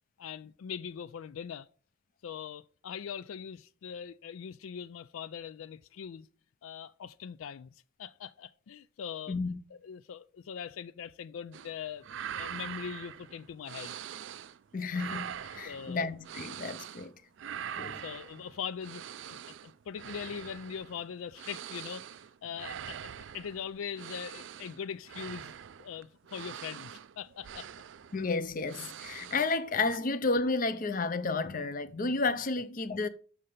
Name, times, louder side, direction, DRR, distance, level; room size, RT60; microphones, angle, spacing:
voice 1, 0.2-1.7 2.2-6.3 6.6-7.7 8.0-9.4 9.7-12.1 12.3-14.0 14.8-14.9 15.6-16.1 17.8-19.0 19.3-19.4 19.6-22.1 22.4-25.5 25.8-27.7, left 7 dB, 80° left, 0.4 m, -41 dB
voice 2, 9.3-9.6 14.7-17.1 17.8-18.0 28.1-33.1, left 3 dB, 40° left, 0.6 m, -32 dB
sound 1, 11.5-11.7 12.0-14.6 14.9-17.1 17.4-29.6 29.8-30.0, right 9 dB, 65° right, 0.4 m, -44 dB
6.7 x 5.6 x 6.6 m
head